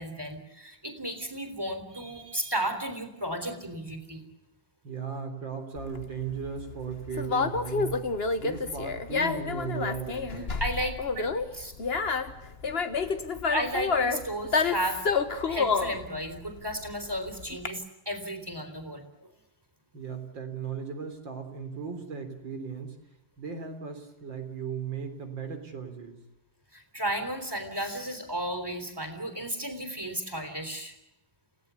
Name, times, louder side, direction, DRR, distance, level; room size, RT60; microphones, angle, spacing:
voice 1, 0.0-4.3 10.6-11.7 13.5-15.0 15.4-19.1 26.7-30.9, right 1 dB, 10° right, 7 dB, 3.7 m, -34 dB
voice 2, 4.8-8.1 8.4-10.6 19.9-23.0 23.4-26.2, right 6 dB, 90° right, 6 dB, 4.3 m, -36 dB
Conversation, 5.8-17.7, left 4 dB, 35° left, 1.5 m, -29 dB
30.0 x 17.5 x 8.3 m, 0.92 s
omnidirectional pair, 2.0 m